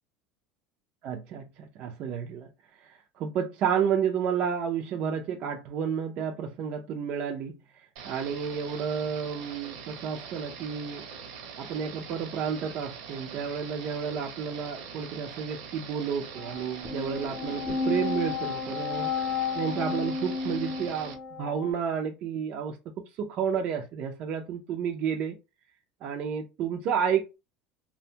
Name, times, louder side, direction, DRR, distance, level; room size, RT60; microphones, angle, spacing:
voice 1, 1.0-2.5 2.8-11.0 11.6-19.3 19.5-22.8 23.2-25.3 26.0-27.4, right 7 dB, 50° right, 0.4 m, -31 dB
sound 1, 8.0-21.2, right 6 dB, 70° right, 0.8 m, -43 dB
sound 2, 16.3-21.7, left 5 dB, ahead, 0.7 m, -32 dB
2.5 x 2.2 x 2.7 m
supercardioid pair, 130°, 3 cm